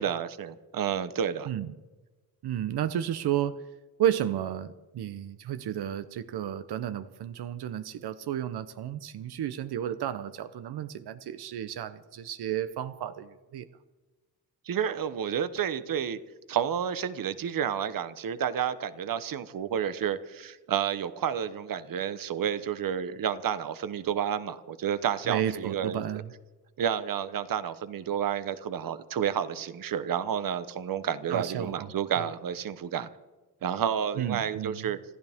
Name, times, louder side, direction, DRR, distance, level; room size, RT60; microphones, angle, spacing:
voice 1, 0.0-1.5 14.7-16.2 16.5-26.0 26.8-33.1 33.6-35.0, right 8 dB, 60° right, 13 dB, 1.0 m, -30 dB
voice 2, 2.4-3.6 4.0-13.7 25.3-26.3 31.3-31.9 34.2-34.9, right 10 dB, 90° right, 12 dB, 0.8 m, -32 dB
26.5 x 14.5 x 3.6 m, 1.2 s
wide cardioid pair, 135°, 38 cm